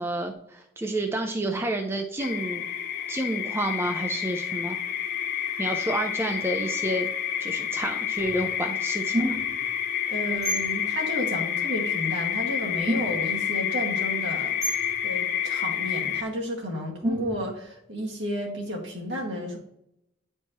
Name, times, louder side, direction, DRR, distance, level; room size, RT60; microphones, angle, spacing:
voice 1, 0.0-2.7 3.1-4.8 5.6-7.1 7.4-9.4, right 1 dB, 15° right, 3 dB, 0.5 m, -29 dB
sound 1, 2.2-16.2, left 9 dB, 50° left, 0.5 m, -29 dB
sound 2, 8.2-8.4 9.1-9.7 10.3-10.7 12.3-12.4 12.6-13.4 14.6-15.0 17.0-17.6, right 1 dB, 40° right, 2.4 m, -29 dB
voice 2, 10.1-19.6, equal, 70° right, -2 dB, 1.8 m, -32 dB
9.6 x 4.5 x 2.9 m, 0.79 s
head